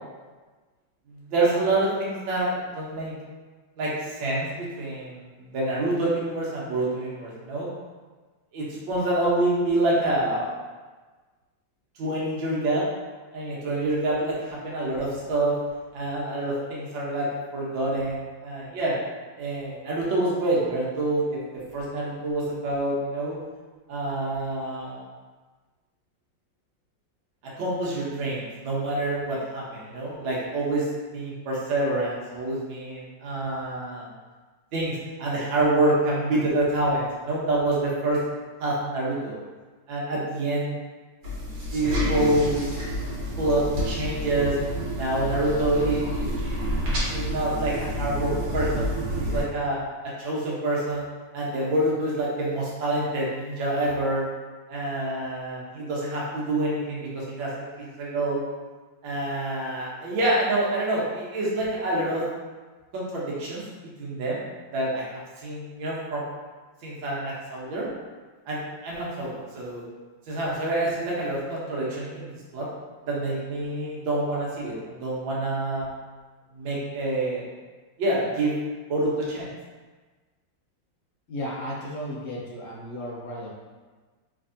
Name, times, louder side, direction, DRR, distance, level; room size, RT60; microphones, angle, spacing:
voice 1, 1.1-3.1 3.8-5.3 5.5-7.7 8.5-10.5 12.0-12.8 13.3-15.6 15.9-17.3 17.5-18.9 19.4-21.4 21.7-23.4 23.9-25.0 27.6-34.1 34.7-38.2 38.6-39.3 39.9-40.8 41.7-42.7 43.4-44.6 44.9-46.3 47.1-49.8 50.2-51.0 51.3-54.2 54.7-58.4 59.0-62.2 62.9-63.6 64.0-64.4 64.7-66.2 66.8-67.9 68.5-69.8 70.3-72.7 73.1-75.9 76.5-77.5 78.0-78.6 78.9-79.5, right 2 dB, 85° right, -5 dB, 1.7 m, -27 dB
sound 1, 41.2-49.4, equal, 65° right, 1.6 m, -29 dB
voice 2, 81.3-83.5, equal, 60° left, -5 dB, 0.8 m, -34 dB
3.4 x 3.2 x 2.6 m, 1.3 s
omnidirectional pair, 2.1 m